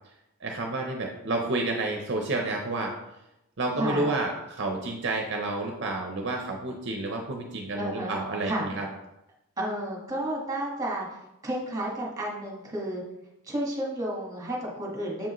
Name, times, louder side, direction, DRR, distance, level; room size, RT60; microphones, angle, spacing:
voice 1, 0.4-3.0 3.6-8.9, right 2 dB, 50° right, 2 dB, 0.6 m, -30 dB
voice 2, 3.8-4.2 7.8-8.2 8.5-8.7 9.6-11.1 11.4-13.0 13.4-15.3, right 1 dB, 15° right, -2 dB, 1.3 m, -31 dB
7.1 x 4.9 x 3.0 m, 0.90 s
head